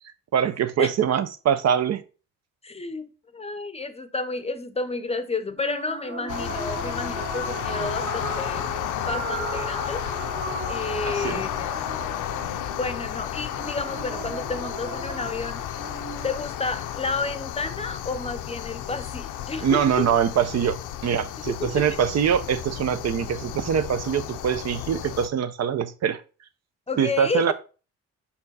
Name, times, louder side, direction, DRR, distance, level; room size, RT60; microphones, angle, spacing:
voice 1, 0.3-2.0 11.1-11.4 19.6-26.2 27.0-27.5, right 8 dB, 60° right, 0.7 m, -23 dB
voice 2, 2.6-8.6 9.1-10.0 10.7-11.7 12.8-15.6 16.2-20.1 21.5-22.0 26.9-27.5, left 3 dB, 20° left, 0.6 m, -31 dB
sound 1, 5.6-16.5, right 3 dB, 45° right, 1.9 m, -36 dB
sound 2, 6.3-25.3, left 11 dB, 85° left, 0.6 m, -33 dB
5.4 x 4.4 x 4.1 m
cardioid pair, 90°, 30 cm